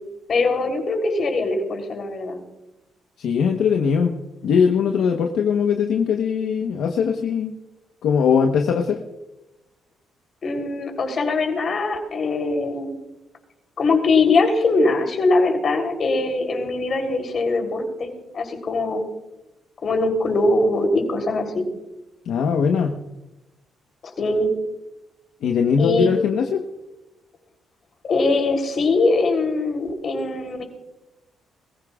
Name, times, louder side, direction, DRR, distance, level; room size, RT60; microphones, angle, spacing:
voice 1, 0.3-2.4 10.4-12.9 13.8-19.0 19.8-21.7 24.2-24.5 25.8-26.1 28.0-30.6, left 3 dB, 50° left, 3 dB, 3.5 m, -22 dB
voice 2, 3.2-4.1 4.4-7.5 8.0-9.0 22.3-23.0 25.4-26.6, left 6 dB, 75° left, 3 dB, 1.1 m, -20 dB
22.5 x 15.5 x 2.4 m, 0.97 s
cardioid pair, 90°, 0 cm